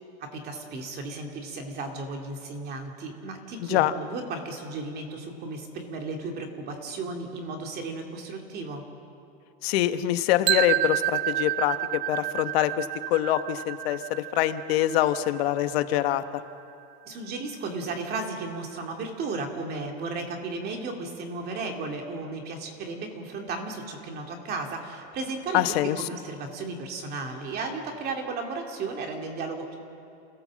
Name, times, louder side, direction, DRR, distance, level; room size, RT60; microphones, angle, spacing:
voice 1, 0.2-8.8 17.0-29.8, right 3 dB, 30° right, 3 dB, 2.6 m, -34 dB
voice 2, 3.6-3.9 9.6-16.4 25.5-26.1, left 13 dB, 85° left, 10 dB, 1.2 m, -25 dB
sound 1, 10.5-16.4, right 16 dB, 80° right, 0.7 m, -30 dB
28.0 x 16.5 x 7.6 m, 2.7 s
supercardioid pair, 170°, 30 cm